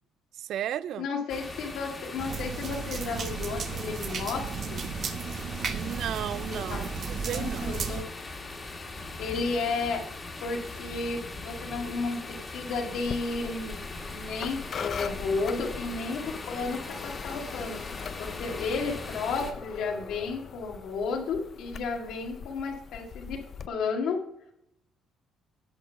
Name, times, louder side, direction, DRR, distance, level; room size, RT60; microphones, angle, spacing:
voice 1, 0.4-1.1 5.7-7.8, right 11 dB, 70° right, 0.3 m, -34 dB
voice 2, 1.0-4.8 6.5-6.9 7.2-8.0 9.2-10.0 10.4-13.8 14.1-17.8 18.2-23.4 23.7-24.2, left 4 dB, 75° left, 2.0 m, -33 dB
sound 1, 1.3-19.5, left 3 dB, 25° left, 1.7 m, -40 dB
sound 2, 2.2-8.0, right 5 dB, 45° right, 1.0 m, -34 dB
sound 3, 12.9-23.7, left 6 dB, 45° left, 0.5 m, -41 dB
9.2 x 6.3 x 5.6 m
cardioid pair, 110°, 0 cm